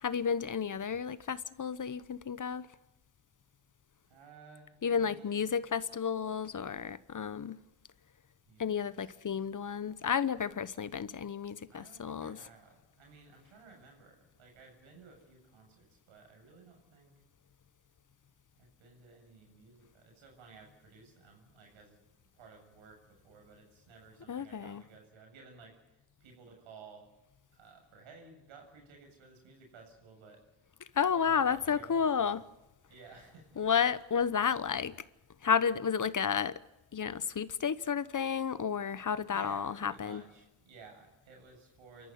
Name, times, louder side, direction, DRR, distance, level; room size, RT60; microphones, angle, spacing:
voice 1, 0.0-2.7 4.8-7.6 8.6-12.4 24.3-24.8 31.0-32.4 33.6-34.9 35.4-36.6 36.9-40.2, left 7 dB, 40° left, 1.1 m, -31 dB
voice 2, 4.1-5.5 8.5-8.8 9.0-9.5 11.7-17.1 18.6-27.1 27.5-30.4 31.1-32.4 32.9-33.9 39.3-42.1, right 4 dB, 90° right, 7.4 m, -56 dB
27.5 x 14.0 x 9.5 m
cardioid pair, 65°, 46 cm